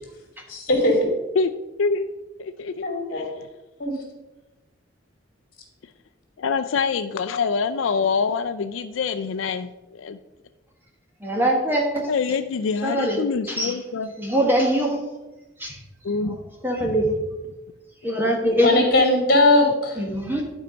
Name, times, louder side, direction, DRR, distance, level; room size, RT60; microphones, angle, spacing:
voice 1, 0.5-1.0 2.8-3.3 3.8-3.9 18.6-20.0, left 2 dB, 50° left, 0 dB, 2.4 m, -19 dB
voice 2, 1.8-2.1 2.4-3.5 6.4-10.2 12.1-14.1 16.0-16.4, left 5 dB, 80° left, 9 dB, 0.4 m, -25 dB
voice 3, 11.2-12.1 12.8-13.2 13.5-13.7 14.2-15.0 15.6-15.8 16.6-17.1 18.0-18.7 20.0-20.4, equal, 10° right, 0 dB, 1.3 m, -22 dB
11.5 x 4.5 x 5.1 m, 1.1 s
head